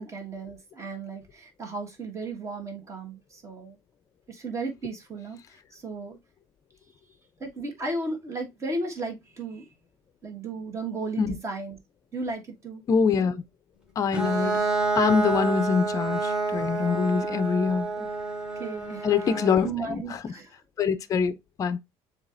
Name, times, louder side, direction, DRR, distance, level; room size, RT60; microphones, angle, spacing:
voice 1, 0.0-3.8 4.3-6.2 7.4-9.7 10.2-11.8 12.1-12.8 18.0-18.1 18.6-19.3 19.6-20.6, right 3 dB, 30° right, 1.4 m, -35 dB
voice 2, 12.9-13.4 14.0-14.6 15.0-17.9 19.0-20.0 20.8-21.8, left 6 dB, 30° left, 0.4 m, -24 dB
Bowed string instrument, 14.1-19.7, right 3 dB, 5° right, 1.7 m, -28 dB
7.2 x 2.8 x 2.5 m
cardioid pair, 130°, 11 cm